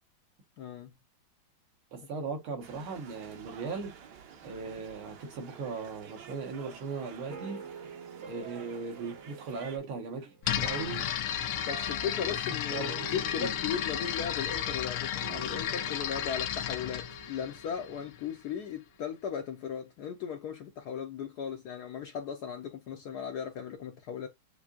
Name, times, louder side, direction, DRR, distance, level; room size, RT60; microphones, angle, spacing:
voice 1, 0.6-0.9 11.6-24.3, left 7 dB, 70° left, 0.9 m, -37 dB
voice 2, 1.9-3.9 4.4-7.6 8.3-11.0 12.2-12.4 12.7-13.6, right 4 dB, 80° right, 2.2 m, -38 dB
sound 1, 2.6-9.8, right 7 dB, 60° right, 1.3 m, -50 dB
sound 2, 7.3-18.4, right 5 dB, 45° right, 0.9 m, -47 dB
sound 3, 10.4-18.2, left 10 dB, 90° left, 1.5 m, -33 dB
6.9 x 2.6 x 2.4 m
omnidirectional pair, 2.3 m